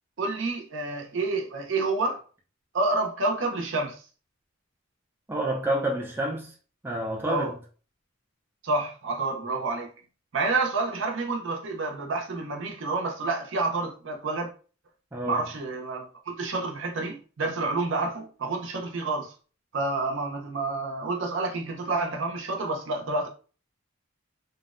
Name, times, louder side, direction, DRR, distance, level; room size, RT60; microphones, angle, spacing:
voice 1, 0.2-2.2 2.7-4.0 7.3-7.5 8.6-9.9 10.3-14.5 15.3-19.3 19.7-23.3, right 3 dB, 60° right, 0.6 m, -29 dB
voice 2, 5.3-6.5 6.8-7.6 15.1-15.4, right 1 dB, 10° right, 0.3 m, -29 dB
2.6 x 2.0 x 2.4 m
head